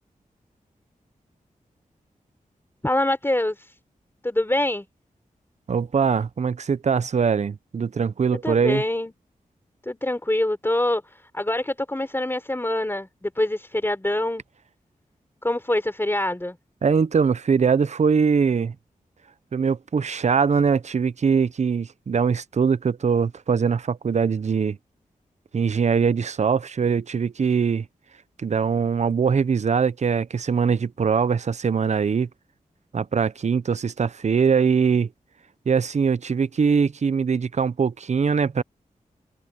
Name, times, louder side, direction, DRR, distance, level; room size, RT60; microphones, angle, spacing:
voice 1, 2.8-3.7 4.2-4.9 8.4-9.1 9.8-14.4 15.4-16.6, left 1 dB, 15° left, 4.0 m, -25 dB
voice 2, 5.7-8.8 16.8-18.7 19.5-24.8 25.5-27.9 28.4-32.3 32.9-35.1 35.7-38.6, right 6 dB, 55° right, 0.7 m, -22 dB
wide cardioid pair, 80°, 14 cm